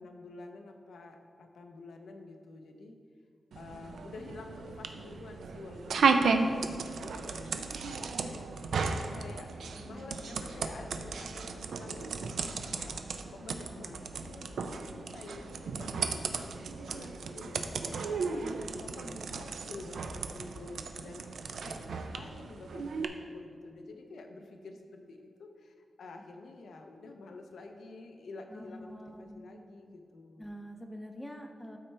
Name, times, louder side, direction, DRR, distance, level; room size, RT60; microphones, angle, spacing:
voice 1, 0.0-3.0 3.5-18.4 18.8-30.5, left 3 dB, 90° left, 4 dB, 0.7 m, -49 dB
sound 1, 3.5-23.1, right 4 dB, 85° right, 0.4 m, -34 dB
voice 2, 9.8-10.4 18.4-18.7 28.5-29.4 30.4-31.8, equal, 5° left, 4 dB, 0.5 m, -46 dB
12.5 x 4.4 x 3.3 m, 2.2 s
wide cardioid pair, 155°, 0 cm